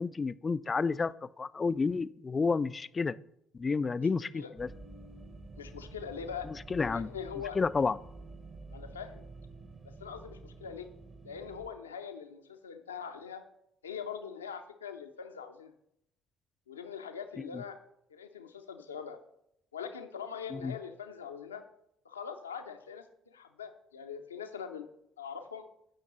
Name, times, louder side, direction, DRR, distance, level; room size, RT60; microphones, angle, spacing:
voice 1, 0.0-3.2 3.5-4.7 6.5-7.1 7.6-8.0 17.5-17.6 20.5-20.7, left 4 dB, 30° left, 17 dB, 0.3 m, -30 dB
sound 1, 4.6-11.7, right 3 dB, 30° right, 1.0 m, -49 dB
voice 2, 5.6-6.5 6.9-7.6 8.7-9.2 10.0-10.9 11.2-13.4 13.8-15.7 16.7-17.8 18.1-19.2 19.7-21.6 22.0-24.8 25.2-25.6, left 7 dB, 80° left, 8 dB, 0.6 m, -42 dB
15.5 x 5.8 x 3.0 m, 0.76 s
figure-of-eight pair, 50°, 0 cm